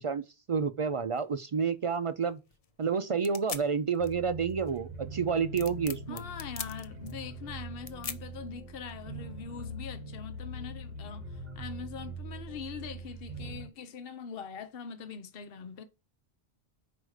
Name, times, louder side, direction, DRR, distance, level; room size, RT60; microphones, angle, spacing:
voice 1, 0.0-2.4 2.8-6.2, right 6 dB, 60° right, 0.3 m, -30 dB
sound 1, 1.1-9.2, left 6 dB, 40° left, 0.7 m, -45 dB
sound 2, 4.0-13.7, right 2 dB, 40° right, 1.4 m, -42 dB
voice 2, 6.1-11.2 11.5-15.8, left 6 dB, 65° left, 1.0 m, -42 dB
5.0 x 4.8 x 6.3 m
omnidirectional pair, 1.1 m